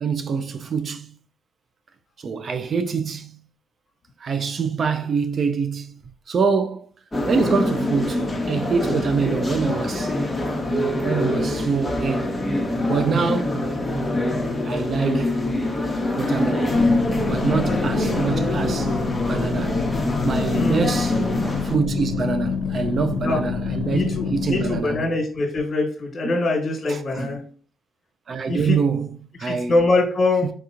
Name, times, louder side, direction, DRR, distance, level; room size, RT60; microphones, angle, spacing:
voice 1, 0.0-1.2 2.2-3.4 4.2-6.0 6.3-6.9 7.3-10.1 11.0-12.3 12.9-13.6 14.6-15.4 16.2-16.9 17.2-19.0 19.3-19.8 20.2-21.2 21.6-25.0 26.2-26.4 26.9-27.3 28.3-29.7, right 5 dB, 50° right, 0.3 m, -25 dB
sound 1, 7.1-21.8, left 1 dB, 15° left, 0.8 m, -24 dB
sound 2, 16.7-24.8, left 5 dB, 80° left, 0.5 m, -27 dB
voice 2, 20.5-20.9 23.2-23.4 23.9-27.4 28.5-28.8 29.4-30.5, left 2 dB, 45° left, 1.3 m, -23 dB
4.5 x 2.8 x 2.4 m
cardioid pair, 90°, 0 cm